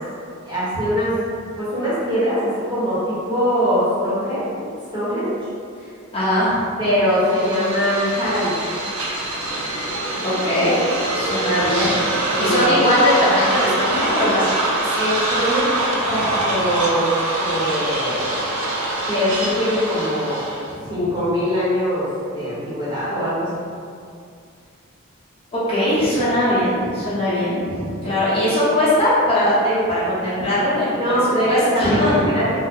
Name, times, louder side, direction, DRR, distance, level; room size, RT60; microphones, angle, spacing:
voice 1, 0.4-1.1 1.5-4.7 4.9-5.3 6.8-8.7 12.3-12.7 14.9-15.8 16.1-17.1 17.4-18.3 19.1-20.4 20.9-23.5 28.1-28.3 30.9-32.6, equal, 20° right, -12 dB, 1.0 m, -22 dB
voice 2, 6.1-6.6 10.2-10.8 11.1-11.9 12.4-14.9 20.7-20.9 25.5-31.2 31.5-32.2, left 1 dB, 25° left, -10 dB, 0.8 m, -20 dB
sound 1, 7.2-20.7, right 2 dB, 80° right, 0.6 m, -24 dB
2.7 x 2.1 x 3.7 m, 2.3 s
head